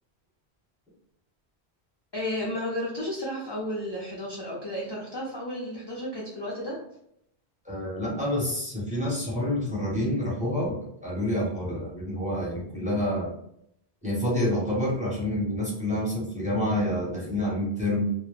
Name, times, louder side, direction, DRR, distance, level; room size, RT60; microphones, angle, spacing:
voice 1, 2.1-6.7, left 1 dB, 40° left, -6 dB, 0.4 m, -33 dB
voice 2, 7.6-10.8 11.0-13.3 14.0-18.1, left 1 dB, 10° right, -5 dB, 0.6 m, -28 dB
2.2 x 2.0 x 3.0 m, 0.74 s
omnidirectional pair, 1.1 m